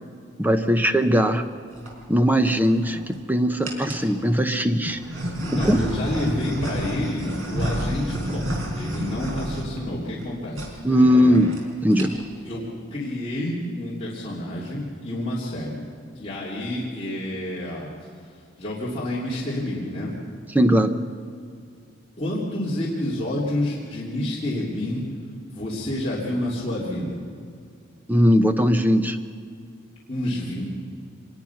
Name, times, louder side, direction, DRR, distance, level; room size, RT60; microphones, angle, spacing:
voice 1, 0.4-1.5 2.1-5.0 5.5-5.8 10.8-12.2 20.5-21.0 28.1-29.2, equal, 10° right, 8 dB, 0.8 m, -19 dB
sound 1, 1.5-1.9 2.6-3.2 3.6-4.1 4.8-10.3 10.5-10.7 11.0-11.1 11.3-11.6 11.9-12.4, equal, 70° right, 4.5 m, -30 dB
voice 2, 5.5-11.4 12.4-15.8 16.1-17.9 18.6-20.1 22.2-25.0 25.5-27.2 30.1-30.6, left 1 dB, 25° left, -7 dB, 2.9 m, -29 dB
25.0 x 20.0 x 5.9 m, 2.2 s
head